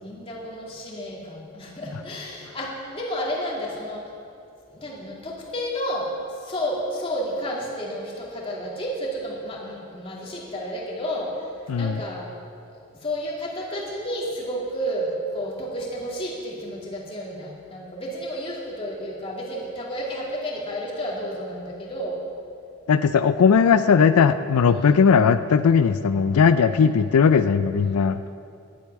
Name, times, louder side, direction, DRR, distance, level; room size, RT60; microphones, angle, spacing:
voice 1, 0.0-4.0 4.7-11.5 11.7-12.3 13.0-22.2 24.7-25.0 26.7-27.0, equal, 25° left, -4 dB, 2.5 m, -31 dB
voice 2, 11.7-12.0 22.9-28.2, left 6 dB, 85° left, 11 dB, 0.4 m, -18 dB
11.5 x 8.2 x 9.5 m, 2.5 s
head